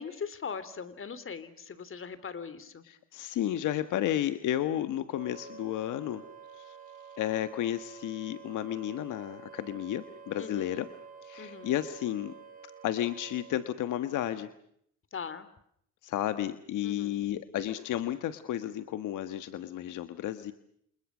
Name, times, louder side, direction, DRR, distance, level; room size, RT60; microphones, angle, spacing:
voice 1, 0.0-2.8 10.4-10.9 11.4-11.7 15.1-15.5 16.8-17.2, left 6 dB, 45° left, 15 dB, 3.2 m, -40 dB
voice 2, 2.8-6.2 6.6-6.7 7.2-10.9 11.2-12.3 12.8-14.5 16.0-20.5, left 12 dB, 85° left, 10 dB, 1.5 m, -32 dB
Wind instrument woodwind instrument, 5.1-13.6, right 6 dB, 30° right, 5.1 m, -49 dB
29.5 x 27.5 x 6.3 m, 0.71 s
cardioid pair, 90°, 30 cm